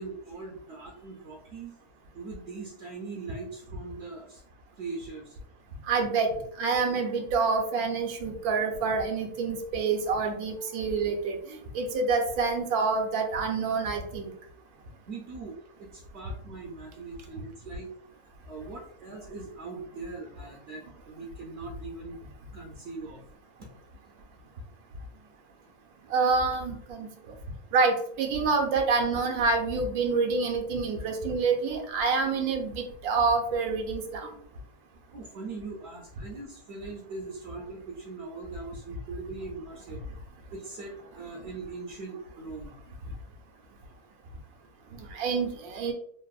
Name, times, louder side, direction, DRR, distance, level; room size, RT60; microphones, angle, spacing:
voice 1, 0.0-1.8 2.1-4.4 4.8-5.4 15.1-17.9 18.4-22.2 22.5-23.2 23.6-23.7 35.1-40.0 40.5-42.8, right 3 dB, 70° right, -2 dB, 0.6 m, -41 dB
voice 2, 5.9-6.3 6.6-14.3 26.1-27.1 27.7-34.3 45.1-45.9, right 4 dB, 85° right, 3 dB, 1.1 m, -27 dB
3.2 x 2.0 x 2.3 m, 0.67 s
omnidirectional pair, 1.5 m